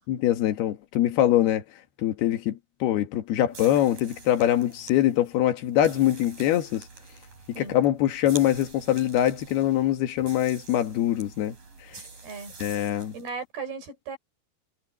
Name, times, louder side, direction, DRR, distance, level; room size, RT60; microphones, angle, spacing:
voice 1, 0.1-1.6 2.0-6.9 7.6-11.6 12.6-13.1, left 12 dB, 80° left, 3.6 m, -23 dB
sound 1, 3.5-13.4, right 4 dB, 55° right, 8.2 m, -46 dB
voice 2, 12.2-12.8 13.1-14.2, right 4 dB, 75° right, 6.9 m, -37 dB
omnidirectional pair, 4.5 m